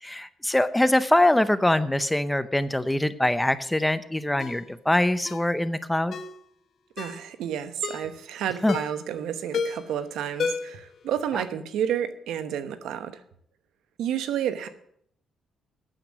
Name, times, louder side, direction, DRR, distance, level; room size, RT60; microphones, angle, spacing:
voice 1, 0.0-6.1 8.6-8.8, left 1 dB, 10° left, 13 dB, 0.7 m, -23 dB
Ringtone, 4.4-4.6 5.3-5.5 6.1-6.4 7.0-7.2 7.8-8.1 8.7-9.0 9.5-9.9 10.4-10.8 11.2-11.3, left 5 dB, 55° left, 1.3 m, -31 dB
voice 2, 7.0-13.2 14.0-14.7, right 9 dB, 80° right, 11 dB, 1.0 m, -30 dB
9.0 x 8.0 x 7.3 m, 0.69 s
cardioid pair, 90°, 0 cm